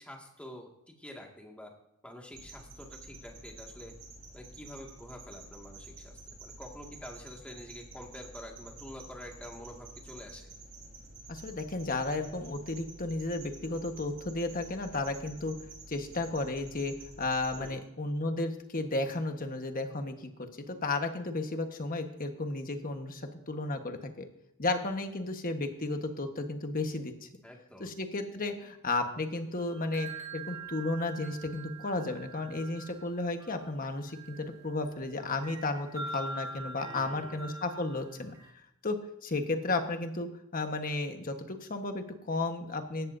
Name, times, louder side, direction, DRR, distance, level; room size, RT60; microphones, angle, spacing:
voice 1, 0.0-1.7 2.0-3.9 4.3-10.5 17.6-17.9 27.4-27.9 36.9-37.5, left 1 dB, 5° left, 0 dB, 2.0 m, -47 dB
sound 1, 2.3-17.7, right 2 dB, 50° right, 6.0 m, -50 dB
voice 2, 11.3-15.5 15.9-24.3 24.6-27.3 27.8-38.3 38.8-39.0 39.2-43.1, left 2 dB, 40° left, 6 dB, 1.3 m, -33 dB
sound 2, 29.6-38.5, right 3 dB, 15° right, 2.0 m, -45 dB
17.5 x 14.0 x 2.7 m, 0.82 s
head